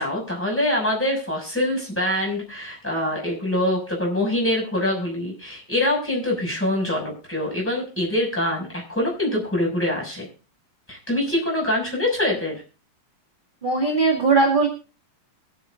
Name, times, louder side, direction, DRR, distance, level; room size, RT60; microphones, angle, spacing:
voice 1, 0.0-10.3 10.9-12.5, left 1 dB, 5° left, -3 dB, 6.0 m, -24 dB
voice 2, 13.6-14.7, right 3 dB, 20° right, -1 dB, 1.5 m, -19 dB
23.5 x 9.7 x 2.6 m, 0.34 s
omnidirectional pair, 3.8 m